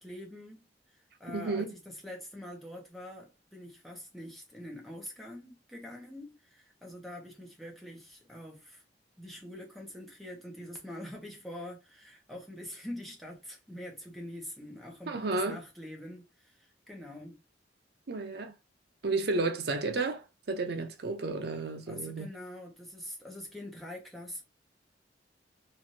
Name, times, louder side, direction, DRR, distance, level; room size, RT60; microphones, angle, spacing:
voice 1, 0.0-8.8 9.2-17.4 19.3-19.5 21.9-24.4, left 1 dB, ahead, 0.8 m, -45 dB
voice 2, 1.3-1.7 15.1-15.6 18.1-18.5 19.0-22.3, right 3 dB, 60° right, 0.6 m, -32 dB
3.1 x 2.5 x 2.7 m
head